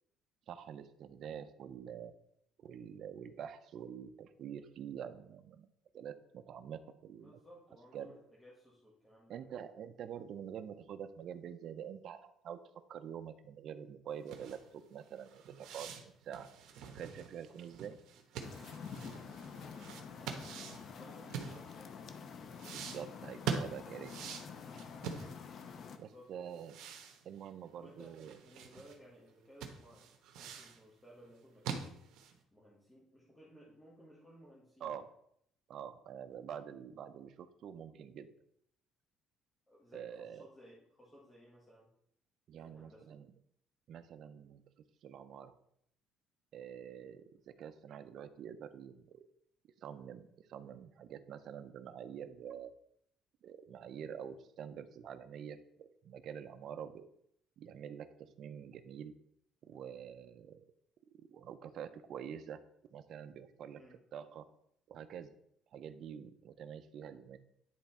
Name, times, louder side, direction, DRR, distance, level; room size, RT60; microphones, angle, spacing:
voice 1, 0.5-2.1 2.6-5.7 5.9-7.4 7.9-8.2 9.3-12.6 12.9-16.5 16.9-18.0 18.7-18.8 22.7-24.1 26.0-26.8 27.2-28.4 34.8-35.1 35.7-38.3 39.9-40.4 42.5-43.3 43.9-44.6 45.0-45.5 46.5-49.3 49.8-52.7 53.4-57.1 57.6-59.1 59.6-60.7 61.1-62.6 62.9-63.8 64.1-64.4 64.9-65.3 65.7-67.4, right 8 dB, 50° right, 9 dB, 0.5 m, -46 dB
voice 2, 7.2-9.4 17.5-17.7 19.1-22.2 26.0-26.6 27.7-30.0 30.4-32.0 32.5-35.1 39.7-41.9 42.5-43.1 63.7-64.0, equal, 10° left, -5 dB, 1.4 m, -59 dB
sound 1, 14.2-22.0 22.6-25.7 26.0-26.1 26.5-29.0 29.3-29.4 29.6-30.8 31.3-32.4, right 6 dB, 75° right, 1.1 m, -44 dB
sound 2, 18.4-26.0, left 6 dB, 45° left, 0.7 m, -48 dB
10.0 x 3.4 x 4.3 m, 0.72 s
cardioid pair, 145°, 0 cm